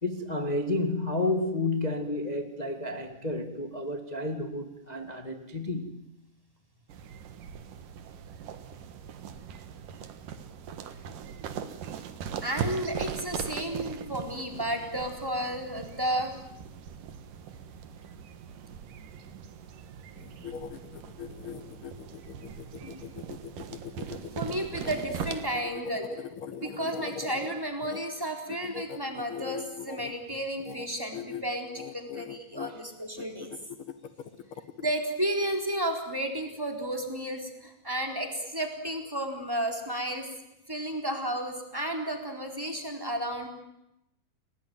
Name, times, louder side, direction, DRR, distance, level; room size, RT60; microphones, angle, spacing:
voice 1, 0.0-6.0, left 2 dB, 20° left, 1.0 m, -31 dB
sound 1, 6.9-25.5, right 7 dB, 65° right, 3.0 m, -40 dB
voice 2, 12.4-16.3 22.8-23.0 24.4-26.3 26.5-33.5 34.8-40.3 40.7-43.5, right 1 dB, 5° right, 3.7 m, -32 dB
sound 2, 20.2-28.0 28.5-30.1 30.6-30.9 31.1-31.4 31.7-32.7 33.2-34.9, left 8 dB, 55° left, 1.5 m, -40 dB
29.5 x 20.0 x 9.4 m
omnidirectional pair, 4.2 m